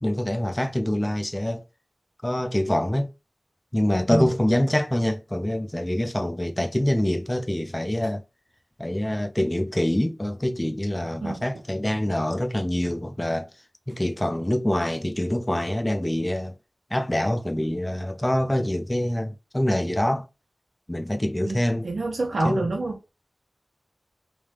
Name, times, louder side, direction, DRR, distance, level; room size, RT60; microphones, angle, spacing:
voice 1, 0.0-1.6 2.2-3.1 3.7-8.2 8.8-13.5 13.9-16.6 16.9-20.2 20.9-21.9 22.4-22.6, left 1 dB, 15° left, 0.5 m, -25 dB
voice 2, 21.4-23.1, right 2 dB, 85° right, 0.6 m, -27 dB
3.3 x 2.8 x 3.3 m
wide cardioid pair, 70°, 0 cm